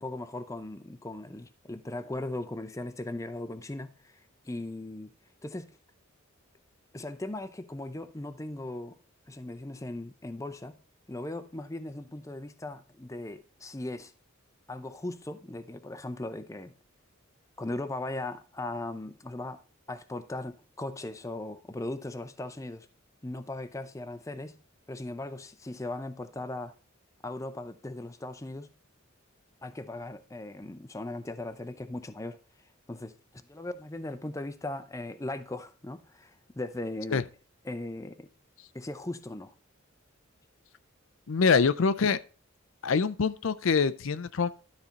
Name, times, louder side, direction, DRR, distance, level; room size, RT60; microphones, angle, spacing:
voice 1, 0.0-5.1 5.4-5.7 6.9-8.9 9.3-10.8 11.1-14.1 14.7-16.7 17.6-19.6 19.9-22.9 23.2-24.6 24.9-26.7 27.2-28.7 29.6-32.4 32.9-33.2 33.5-37.2 37.6-38.3 38.7-39.5, left 2 dB, 15° left, 0.6 m, -38 dB
voice 2, 41.3-42.2 42.8-44.5, left 5 dB, 70° left, 0.5 m, -25 dB
12.5 x 4.3 x 5.2 m
head